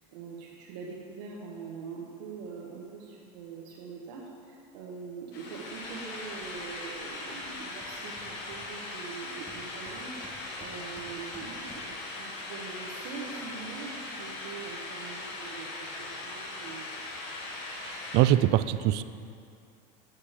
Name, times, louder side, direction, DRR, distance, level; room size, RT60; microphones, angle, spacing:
voice 1, 0.1-16.9, right 5 dB, 85° right, -3 dB, 1.3 m, -43 dB
sound 1, 5.3-18.2, left 2 dB, 55° left, 1.8 m, -40 dB
Hammer, 7.4-7.5 7.8-9.1 9.5-12.1, left 1 dB, 5° left, 1.4 m, -53 dB
voice 2, 17.9-19.0, right 13 dB, 55° right, 14 dB, 0.4 m, -23 dB
8.7 x 8.5 x 5.0 m, 2.4 s
supercardioid pair, 125°, 21 cm